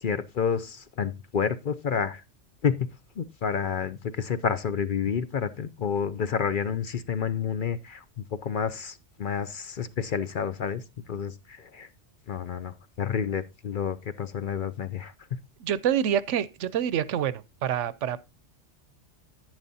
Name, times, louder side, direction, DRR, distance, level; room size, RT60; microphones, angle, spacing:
voice 1, 0.0-2.2 2.6-2.9 3.2-8.0 8.3-11.9 12.3-15.4, left 7 dB, 50° left, 0.7 m, -29 dB
voice 2, 15.6-18.2, right 9 dB, 80° right, 1.0 m, -27 dB
10.5 x 9.5 x 2.7 m
omnidirectional pair, 1.2 m